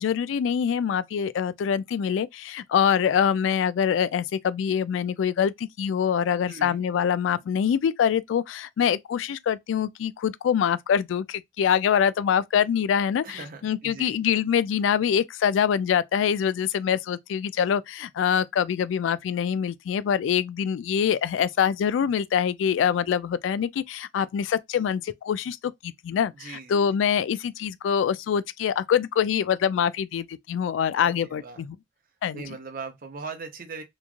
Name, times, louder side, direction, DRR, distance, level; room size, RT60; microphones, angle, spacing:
voice 1, 0.0-25.6 25.8-31.8 32.2-32.4, left 8 dB, 90° left, 0.3 m, -24 dB
voice 2, 6.4-6.8 13.2-14.2 26.3-26.7 31.0-31.6 32.3-33.8, right 4 dB, 50° right, 0.7 m, -40 dB
3.0 x 2.4 x 2.4 m
head